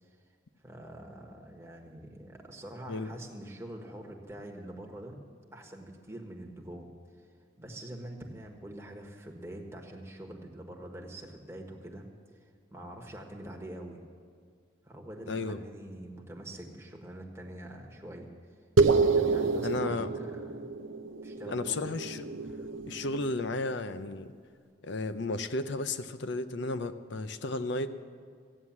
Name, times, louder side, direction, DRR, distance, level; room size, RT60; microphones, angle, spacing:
voice 1, 0.6-5.2 5.5-6.9 7.2-7.3 7.6-12.1 12.3-12.4 12.7-14.0 14.8-18.3 19.0-20.7 21.2-21.9, right 1 dB, 15° right, 1 dB, 1.3 m, -45 dB
voice 2, 15.3-15.6 19.6-20.1 21.5-22.3 22.9-24.3 24.8-27.9, left 2 dB, 60° left, 11 dB, 0.6 m, -33 dB
sound 1, 18.8-23.5, right 4 dB, 70° right, 0.7 m, -28 dB
14.5 x 9.6 x 7.3 m, 2.1 s
head